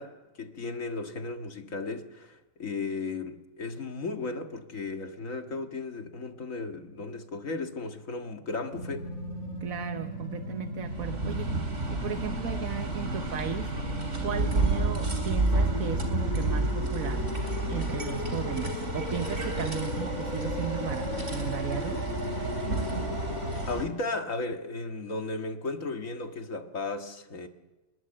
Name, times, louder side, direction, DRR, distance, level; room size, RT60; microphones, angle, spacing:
voice 1, 0.0-9.1 23.7-27.5, left 3 dB, 75° left, 2.2 m, -35 dB
sound 1, 8.7-23.6, left 2 dB, 90° left, 4.0 m, -38 dB
voice 2, 9.6-13.7 14.2-17.3 17.7-22.0, right 9 dB, 85° right, 1.5 m, -36 dB
sound 2, 10.8-23.9, right 2 dB, 60° right, 3.4 m, -30 dB
26.0 x 21.0 x 7.9 m
omnidirectional pair, 1.4 m